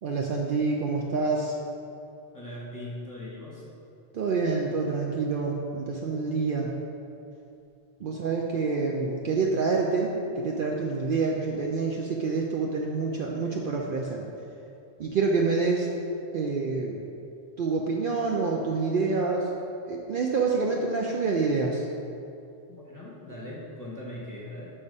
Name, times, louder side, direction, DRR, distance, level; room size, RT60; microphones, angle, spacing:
voice 1, 0.0-1.5 4.1-6.7 8.0-14.2 15.0-15.9 16.3-17.0 17.6-19.5 19.9-21.8, right 4 dB, 60° right, -1 dB, 0.6 m, -27 dB
voice 2, 2.3-3.7 8.0-8.2 22.7-24.7, left 1 dB, 20° left, -6 dB, 1.1 m, -40 dB
6.8 x 3.5 x 5.3 m, 2.6 s
omnidirectional pair, 1.1 m